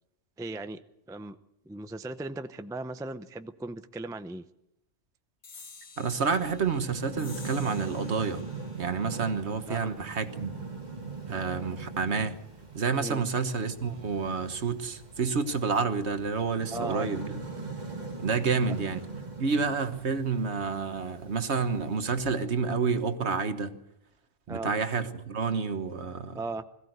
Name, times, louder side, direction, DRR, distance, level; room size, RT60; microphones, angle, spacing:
voice 1, 0.4-0.8 1.1-1.4 1.7-4.4 9.7-9.9 13.0-13.2 16.7-17.1 24.5-24.7 26.3-26.6, right 2 dB, 5° right, 10 dB, 0.5 m, -37 dB
sound 1, 5.4-12.3, left 4 dB, 85° left, 1.9 m, -53 dB
voice 2, 6.0-8.4 8.8-10.6 11.3-12.3 12.7-17.3 18.2-19.0 19.4-23.8 24.5-26.4, right 5 dB, 65° right, 9 dB, 1.6 m, -29 dB
sound 2, 6.1-22.5, right 4 dB, 35° right, 1.8 m, -41 dB
21.5 x 15.5 x 8.0 m, 0.84 s
omnidirectional pair, 1.2 m